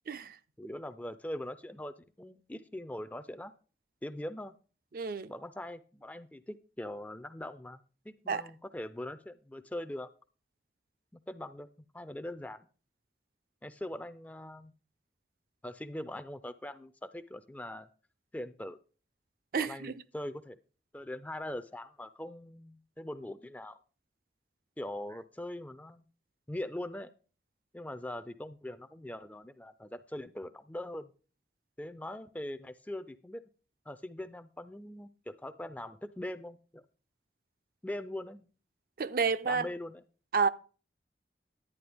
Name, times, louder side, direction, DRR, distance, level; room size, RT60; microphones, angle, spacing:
voice 1, 0.6-3.5 4.0-4.6 5.3-10.1 11.3-11.7 11.9-12.7 13.6-14.7 15.6-17.9 18.3-18.8 19.6-20.6 20.9-23.8 24.8-26.0 26.5-27.1 27.7-31.1 31.8-33.4 33.9-36.8 37.8-38.5 39.4-40.0, left 1 dB, 10° left, 0.4 m, -41 dB
voice 2, 4.9-5.3 8.3-8.4 19.5-19.9 39.0-39.7 40.3-40.5, right 5 dB, 55° right, 0.4 m, -29 dB
11.0 x 9.2 x 3.5 m
head